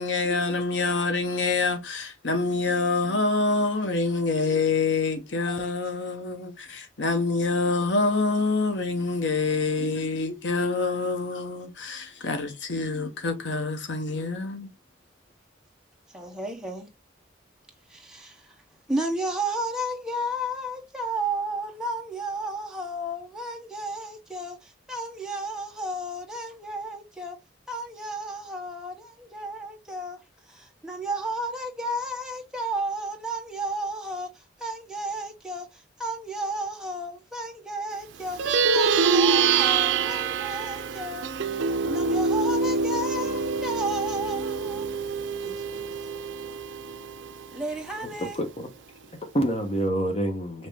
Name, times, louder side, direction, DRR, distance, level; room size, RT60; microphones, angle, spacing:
voice 1, 0.0-14.7, left 3 dB, 75° left, 0.9 m, -26 dB
voice 2, 16.1-16.9 17.9-18.5 18.9-27.4 27.7-30.2 30.5-41.3 41.5-44.9 45.4-45.9 47.5-48.4, right 1 dB, 5° right, 1.1 m, -33 dB
Plucked string instrument, 38.3-48.0, right 5 dB, 75° right, 0.5 m, -25 dB
voice 3, 48.0-48.7 49.2-50.7, right 1 dB, 30° left, 0.9 m, -27 dB
5.2 x 2.9 x 3.4 m
head